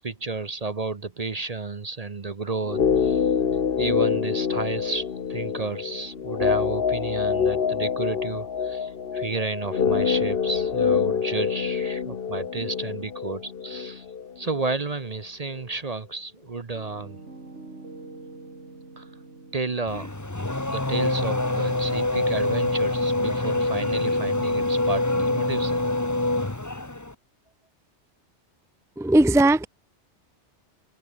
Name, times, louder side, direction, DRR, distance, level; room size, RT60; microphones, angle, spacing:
voice 1, 0.0-3.3 3.8-14.1 14.4-17.2 19.0-19.1 19.5-20.1 20.7-25.8, right 3 dB, 35° right, 1.0 m, -32 dB
sound 1, 2.6-14.8 15.0-15.1, left 6 dB, 55° left, 1.3 m, -26 dB
Piano, 16.7-24.6, right 3 dB, 85° right, 4.0 m, -47 dB
Race car auto racing / Accelerating revving vroom, 19.9-27.1, left 2 dB, 15° left, 1.4 m, -25 dB
voice 2, 29.0-29.7, right 1 dB, 5° right, 0.7 m, -18 dB
omnidirectional pair, 1.2 m